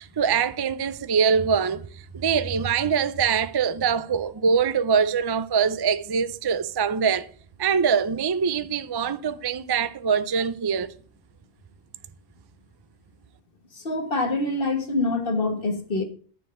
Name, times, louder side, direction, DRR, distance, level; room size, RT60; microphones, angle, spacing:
voice 1, 0.0-7.3 7.6-10.9, right 6 dB, 45° right, 0.3 m, -23 dB
voice 2, 13.7-16.0, left 2 dB, 55° left, 1.7 m, -25 dB
9.8 x 4.6 x 7.6 m
omnidirectional pair, 1.1 m